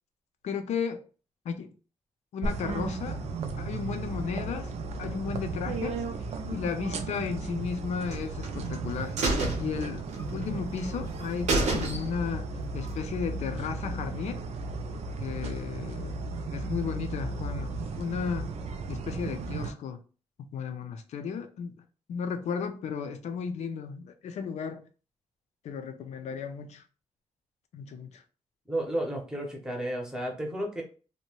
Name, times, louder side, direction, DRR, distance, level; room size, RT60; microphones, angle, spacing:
voice 1, 0.4-1.0 1.4-1.7 2.3-3.2 3.6-4.7 5.0-6.0 6.4-9.2 9.6-10.0 10.3-14.4 15.2-16.2 16.5-18.5 18.9-20.0 20.4-21.8 22.1-24.9 25.6-26.8 27.7-28.2, left 6 dB, 75° left, 0.5 m, -34 dB
sound 1, 2.4-19.7, right 3 dB, 65° right, 0.4 m, -35 dB
sound 2, 8.1-8.8 9.2-10.5 10.8-10.9 11.2-11.3 11.5-12.4 12.7-12.8, right 2 dB, 85° right, 0.8 m, -29 dB
voice 2, 28.7-30.8, right 1 dB, 5° right, 0.8 m, -32 dB
2.7 x 2.1 x 2.9 m
wide cardioid pair, 150°, 12 cm